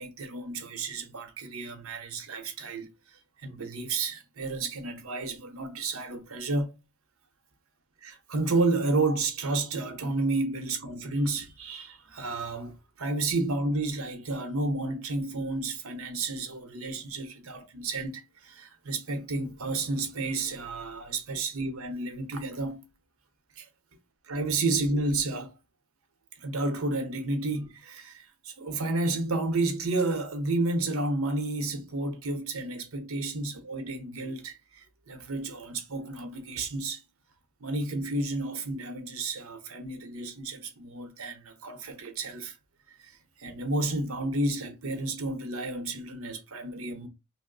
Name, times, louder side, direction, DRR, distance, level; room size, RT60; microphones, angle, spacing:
voice 1, 0.0-2.9 3.4-6.7 8.0-22.8 23.6-23.7 24.3-25.5 26.4-37.0 37.6-42.6 43.0-47.1, right 2 dB, 70° right, 0.8 m, -31 dB
2.9 x 2.1 x 3.8 m
head